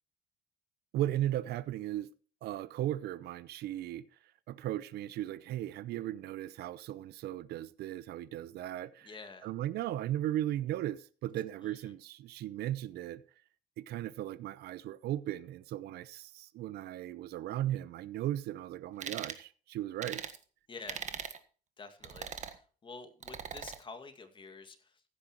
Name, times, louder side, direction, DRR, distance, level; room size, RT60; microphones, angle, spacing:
voice 1, 0.9-2.1 2.4-4.0 4.5-9.1 9.4-13.2 13.8-20.2, right 13 dB, 75° right, 0.7 m, -36 dB
voice 2, 9.0-9.5 11.6-11.9 20.7-21.1 21.8-25.0, left 4 dB, 30° left, 2.1 m, -49 dB
sound 1, 19.0-19.4 20.0-20.4 20.9-21.4 22.0-22.6 23.2-23.8, right 7 dB, 45° right, 1.5 m, -40 dB
15.0 x 9.8 x 3.1 m
cardioid pair, 110°, 17 cm